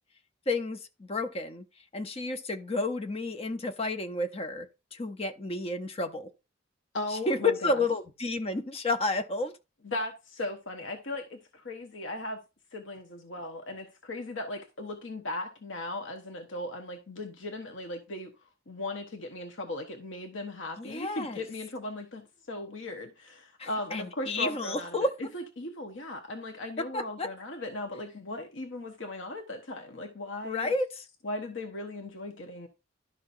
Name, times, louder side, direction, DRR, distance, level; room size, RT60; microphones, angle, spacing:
voice 1, 0.5-1.6 1.9-6.3 7.1-9.5 20.8-21.4 23.6-25.1 26.8-27.3 30.4-31.0, left 2 dB, 30° left, 0.8 m, -31 dB
voice 2, 6.9-7.8 9.8-12.4 12.7-18.3 18.7-30.7 31.2-32.7, left 2 dB, 80° left, 1.1 m, -37 dB
11.5 x 5.8 x 2.6 m
head